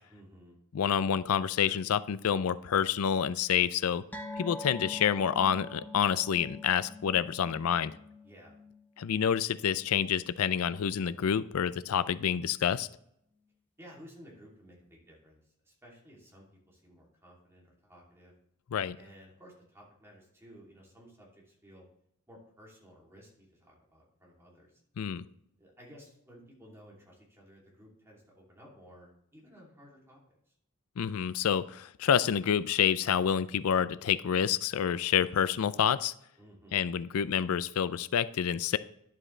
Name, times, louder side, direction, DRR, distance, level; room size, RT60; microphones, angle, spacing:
voice 1, 0.1-0.6 8.2-8.5 13.8-18.3 18.9-21.9 22.3-24.8 25.6-30.2 30.5-30.6 36.4-36.8, equal, 10° right, -4 dB, 2.8 m, -55 dB
voice 2, 0.7-4.0 4.4-8.0 9.0-12.9 18.7-19.0 25.0-25.3 31.0-36.1 36.7-38.8, left 8 dB, 90° left, 16 dB, 0.4 m, -28 dB
sound 1, 4.1-10.9 11.2-11.4 11.8-11.9, left 2 dB, 10° left, 0.9 m, -46 dB
11.0 x 7.5 x 3.2 m, 0.73 s
head